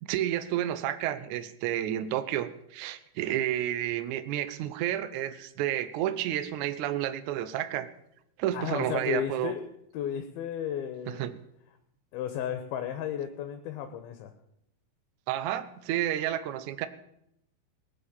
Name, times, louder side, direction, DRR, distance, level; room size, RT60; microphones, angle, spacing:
voice 1, 0.0-7.9 8.4-9.5 11.1-11.3 15.3-16.9, right 12 dB, 90° right, 12 dB, 1.7 m, -31 dB
voice 2, 8.5-11.2 12.1-14.3, left 9 dB, 75° left, 8 dB, 2.8 m, -34 dB
18.5 x 7.8 x 8.7 m, 0.78 s
omnidirectional pair, 4.7 m